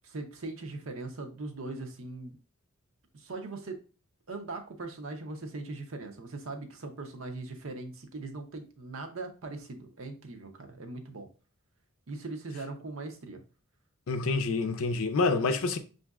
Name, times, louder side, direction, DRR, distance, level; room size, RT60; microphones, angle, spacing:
voice 1, 0.0-2.4 3.1-3.8 4.3-11.3 12.1-13.4, right 3 dB, 70° right, 0.7 m, -40 dB
voice 2, 14.1-15.8, left 3 dB, 80° left, 0.5 m, -27 dB
6.0 x 2.6 x 2.3 m
head